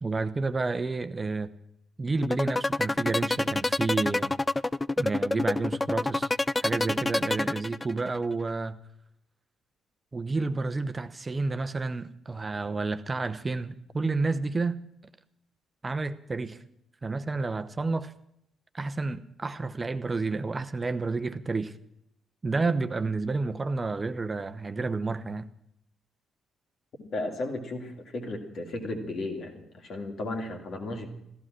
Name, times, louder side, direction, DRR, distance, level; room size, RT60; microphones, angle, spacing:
voice 1, 0.0-1.5 2.0-4.3 5.0-6.3 6.6-8.8 10.1-14.8 15.8-16.6 17.0-18.1 18.7-21.7 22.4-25.5, right 3 dB, 30° right, 0.9 m, -30 dB
sound 1, 2.2-8.2, left 2 dB, 20° left, 0.5 m, -27 dB
voice 2, 27.0-31.1, left 2 dB, 50° left, 2.6 m, -34 dB
15.0 x 14.0 x 6.1 m
figure-of-eight pair, 40°, 0 cm